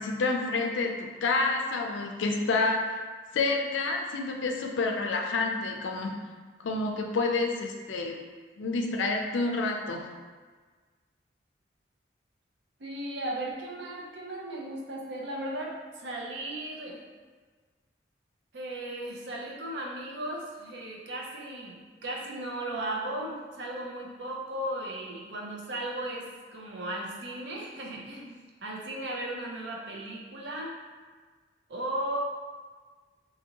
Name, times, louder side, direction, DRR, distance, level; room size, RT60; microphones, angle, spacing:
voice 1, 0.0-3.0 3.3-6.1 6.6-8.2 8.6-10.1, left 3 dB, 90° left, 2 dB, 0.4 m, -28 dB
voice 2, 12.8-17.0 18.5-30.7 31.7-32.2, right 1 dB, 75° right, -2 dB, 0.5 m, -36 dB
2.6 x 2.6 x 2.8 m, 1.5 s
head